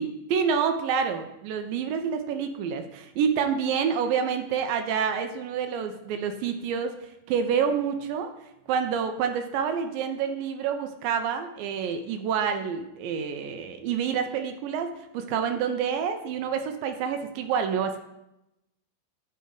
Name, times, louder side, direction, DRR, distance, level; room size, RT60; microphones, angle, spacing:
voice 1, 0.0-7.0 7.3-8.3 8.7-18.0, right 7 dB, 80° right, 6 dB, 2.1 m, -28 dB
9.0 x 3.4 x 4.7 m, 0.87 s
omnidirectional pair, 4.4 m